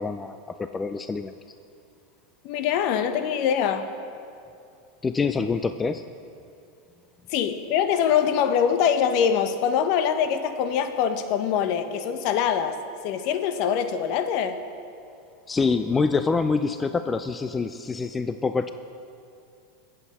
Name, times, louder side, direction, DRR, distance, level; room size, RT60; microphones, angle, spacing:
voice 1, 0.0-1.4 5.0-6.0 15.5-18.7, left 4 dB, 15° left, 10 dB, 0.4 m, -26 dB
voice 2, 2.4-3.9 7.3-12.8 13.0-14.6, left 8 dB, 55° left, 9 dB, 0.9 m, -23 dB
22.5 x 7.9 x 4.2 m, 2.5 s
supercardioid pair, 120°, 0 cm